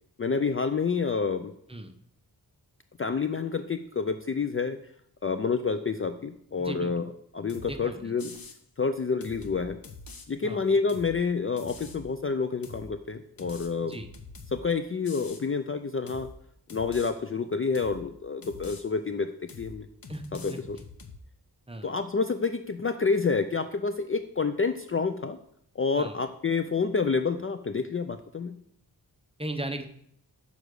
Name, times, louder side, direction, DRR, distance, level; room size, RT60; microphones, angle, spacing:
voice 1, 0.2-1.5 3.0-4.8 5.2-7.0 7.3-8.3 8.8-9.8 10.3-14.0 14.5-16.3 16.7-19.3 19.6-19.9 20.4-20.8 21.8-25.4 25.8-28.6, left 5 dB, 35° left, 9 dB, 0.4 m, -28 dB
voice 2, 6.6-7.1 7.7-8.1 10.4-10.8 13.9-14.1 20.1-20.6 21.7-21.9 26.0-26.2 29.4-29.8, right 1 dB, 15° right, 6 dB, 0.8 m, -37 dB
sound 1, 7.5-7.8 8.2-8.6 9.2-10.3 10.9-11.2 11.6-12.0 12.6-12.9 13.4-14.6 15.0-15.4 16.1-16.3 16.7-17.1 17.7-18.0 18.4-18.8 19.5-19.8 20.0-21.2, left 3 dB, 60° left, 1.0 m, -45 dB
7.0 x 4.9 x 6.4 m, 0.69 s
wide cardioid pair, 95°, 40 cm